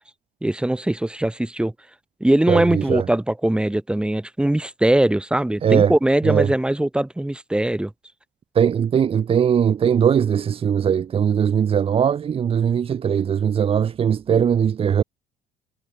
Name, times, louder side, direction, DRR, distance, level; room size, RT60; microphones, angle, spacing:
voice 1, 0.4-1.7 2.2-7.9, right 1 dB, 5° right, 1.0 m, -21 dB
voice 2, 2.5-3.0 5.6-5.9 6.2-6.5 8.6-15.0, right 8 dB, 35° right, 0.6 m, -20 dB
cardioid pair, 110°, 17 cm